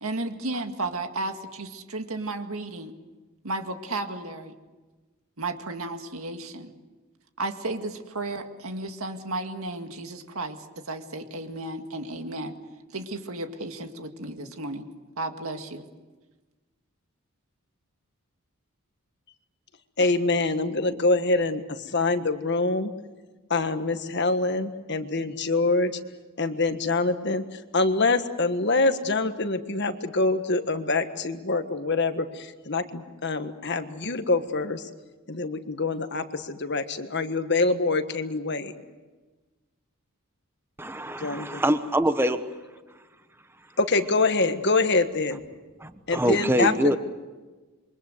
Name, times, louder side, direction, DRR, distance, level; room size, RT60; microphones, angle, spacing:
voice 1, 0.0-2.9 3.4-4.5 5.4-6.7 7.4-12.6 12.9-14.9 15.2-15.9, right 2 dB, 75° right, 6 dB, 2.0 m, -33 dB
voice 2, 20.0-22.9 23.5-25.9 26.4-27.4 27.7-34.8 35.3-38.7 41.2-41.5 43.8-45.4 46.1-47.0, left 3 dB, 50° left, 8 dB, 1.5 m, -25 dB
voice 3, 40.8-42.5 45.8-47.0, right 1 dB, 10° right, 9 dB, 1.1 m, -24 dB
27.5 x 24.0 x 8.0 m, 1.3 s
head